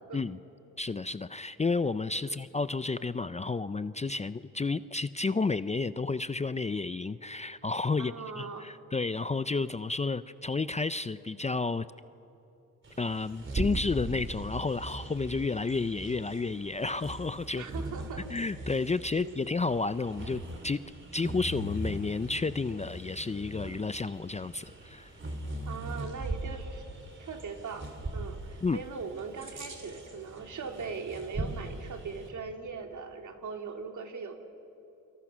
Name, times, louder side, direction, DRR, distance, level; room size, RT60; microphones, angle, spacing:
voice 1, 0.8-11.9 13.0-17.6 18.3-20.8 21.1-25.1 28.6-28.8, left 3 dB, 20° left, 14 dB, 0.5 m, -31 dB
voice 2, 8.0-8.7 17.6-18.3 19.1-19.5 25.7-26.8 27.2-34.4, right 5 dB, 55° right, 4 dB, 2.9 m, -40 dB
Bird vocalization bird call bird song, 12.8-32.3, right 1 dB, 35° right, 3.8 m, -40 dB
28.0 x 25.5 x 6.2 m, 2.9 s
cardioid pair, 70°, 35 cm